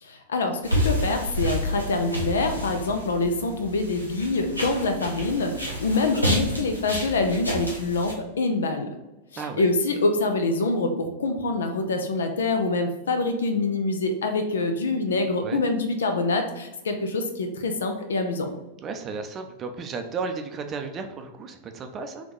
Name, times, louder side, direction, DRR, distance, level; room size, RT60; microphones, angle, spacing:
voice 1, 0.0-8.9 9.3-18.5, left 3 dB, 65° left, 6 dB, 0.5 m, -25 dB
sound 1, 0.6-8.1, equal, 90° left, 0.8 m, -29 dB
voice 2, 5.4-5.8 9.4-9.6 15.4-15.6 18.8-22.3, right 4 dB, 30° right, 6 dB, 0.5 m, -34 dB
3.4 x 3.2 x 3.8 m, 1.0 s
figure-of-eight pair, 90°, 0 cm